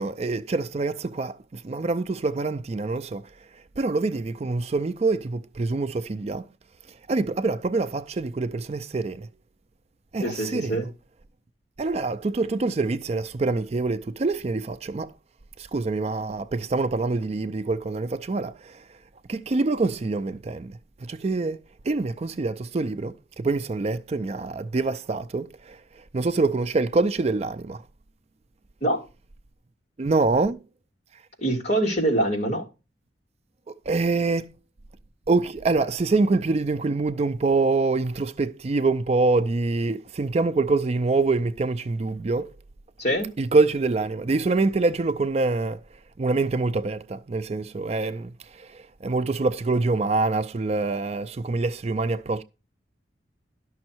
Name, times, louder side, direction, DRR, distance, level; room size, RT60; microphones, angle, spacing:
voice 1, 0.0-6.5 6.9-9.3 10.1-10.8 11.8-15.1 15.6-19.0 19.3-21.6 21.8-27.8 30.0-30.6 33.7-34.5 35.3-42.5 43.4-45.8 46.2-52.4, right 3 dB, 35° right, 0.4 m, -25 dB
voice 2, 10.2-10.9 28.8-29.0 31.4-32.6 43.0-43.3, right 1 dB, 40° left, 2.6 m, -24 dB
12.0 x 6.3 x 4.5 m
head